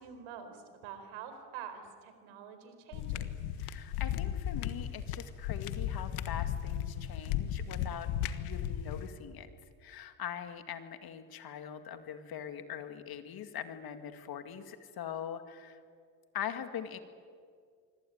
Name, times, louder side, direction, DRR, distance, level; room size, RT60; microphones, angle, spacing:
voice 1, 0.0-3.3, right 7 dB, 70° right, 9 dB, 4.5 m, -46 dB
sound 1, 2.9-9.1, left 10 dB, 90° left, 1.6 m, -35 dB
voice 2, 3.6-9.5 9.8-15.8 16.3-17.0, left 9 dB, 45° left, 8 dB, 2.2 m, -42 dB
25.0 x 24.5 x 9.5 m, 2.1 s
cardioid pair, 130°, 48 cm